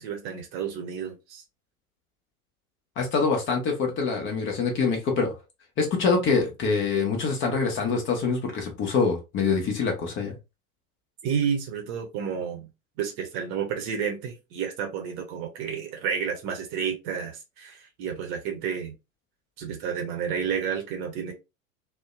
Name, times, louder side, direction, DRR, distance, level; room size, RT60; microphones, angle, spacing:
voice 1, 0.0-1.4 11.2-12.7 13.0-18.9 19.6-21.3, right 7 dB, 40° right, 0.8 m, -31 dB
voice 2, 3.0-5.3 5.8-10.3, left 4 dB, 25° left, 0.8 m, -25 dB
2.6 x 2.1 x 2.3 m
figure-of-eight pair, 80°, 44 cm